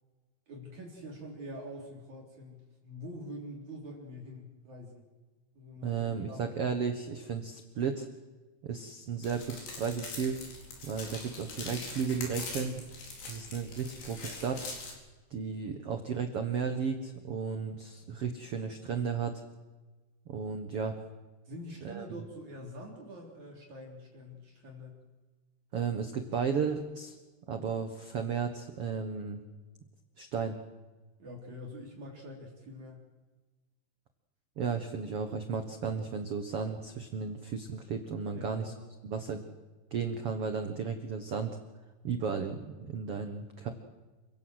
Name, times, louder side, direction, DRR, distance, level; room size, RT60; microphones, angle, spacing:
voice 1, 0.5-5.0 5.5-6.0 6.3-6.5 21.4-25.1 31.2-33.1 38.3-38.9, equal, 45° right, -1 dB, 4.7 m, -45 dB
voice 2, 5.8-8.1 8.6-10.4 10.8-12.8 13.3-14.7 15.3-19.4 20.3-21.0 21.8-22.1 25.7-27.1 27.5-29.4 30.2-30.6 34.6-38.7 39.0-39.4 39.9-41.6 42.0-43.7, right 6 dB, 70° right, 7 dB, 1.4 m, -34 dB
sound 1, 9.2-14.9, left 3 dB, 85° left, 6.6 m, -43 dB
29.0 x 17.5 x 8.0 m, 1.2 s
omnidirectional pair, 4.7 m